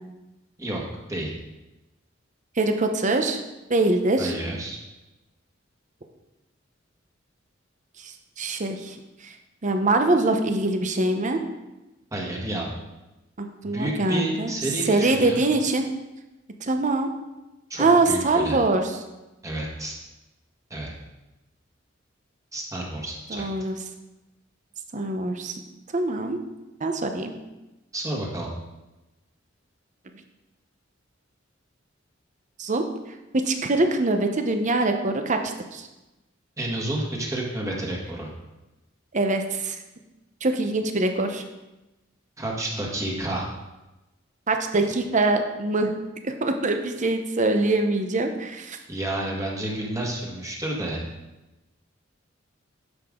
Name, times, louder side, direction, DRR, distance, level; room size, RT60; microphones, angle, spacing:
voice 1, 2.6-3.4 3.7-4.3 8.0-9.0 9.2-9.3 9.6-11.4 13.4-14.5 14.9-15.8 16.6-17.1 17.8-18.9 23.3-23.8 24.9-25.6 25.9-26.4 26.8-27.3 32.6-32.8 33.5-35.9 39.1-39.8 40.4-41.4 44.5-45.9 46.2-48.8, right 2 dB, 40° right, 6 dB, 0.8 m, -23 dB
voice 2, 4.2-4.8 12.1-12.7 13.6-15.4 17.7-18.6 19.4-20.0 20.7-20.9 22.5-23.4 27.9-28.5 36.6-38.3 42.4-43.5 48.9-51.0, right 1 dB, 15° right, -2 dB, 1.6 m, -30 dB
9.9 x 6.8 x 3.8 m, 1.0 s
head